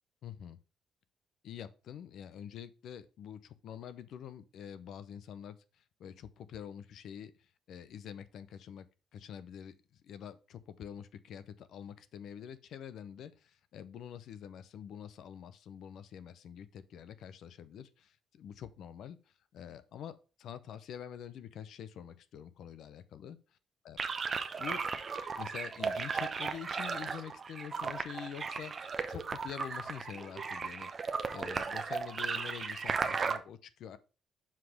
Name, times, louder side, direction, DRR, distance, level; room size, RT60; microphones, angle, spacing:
voice 1, 0.2-0.6 1.4-8.9 9.1-23.4 23.9-24.0 24.6-24.8 25.4-34.0, left 9 dB, 70° left, 0.7 m, -46 dB
sound 1, 24.0-33.4, right 5 dB, 35° right, 0.7 m, -36 dB
5.9 x 4.9 x 4.8 m
cardioid pair, 125°, 0 cm